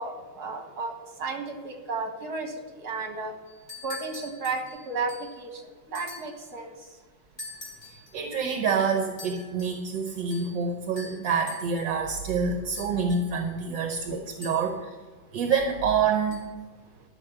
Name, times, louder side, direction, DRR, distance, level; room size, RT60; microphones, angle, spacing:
voice 1, 0.0-3.3 3.8-7.0, right 3 dB, 55° right, 4 dB, 2.2 m, -34 dB
sound 1, 3.5-5.4 5.9-6.4 7.4-8.1 9.2-9.8 10.3-10.6 11.0-11.9 12.8-13.5 14.4-14.9 16.3-16.4, left 2 dB, 30° left, 3.8 m, -44 dB
voice 2, 8.1-15.0 15.3-16.4, right 5 dB, 75° right, 4 dB, 1.6 m, -27 dB
12.5 x 6.1 x 7.9 m, 1.4 s
omnidirectional pair, 2.0 m